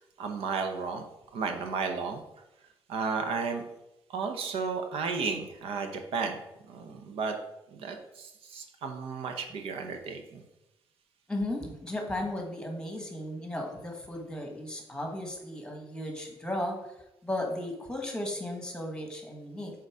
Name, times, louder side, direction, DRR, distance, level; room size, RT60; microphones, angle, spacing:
voice 1, 0.2-1.0 1.3-2.2 2.9-3.6 4.1-6.4 6.7-7.4 7.7-10.4, right 5 dB, 85° right, 5 dB, 0.9 m, -33 dB
voice 2, 11.3-16.8 17.2-19.7, left 1 dB, 10° left, 2 dB, 1.4 m, -35 dB
6.6 x 4.0 x 4.8 m, 0.89 s
cardioid pair, 110°, 9 cm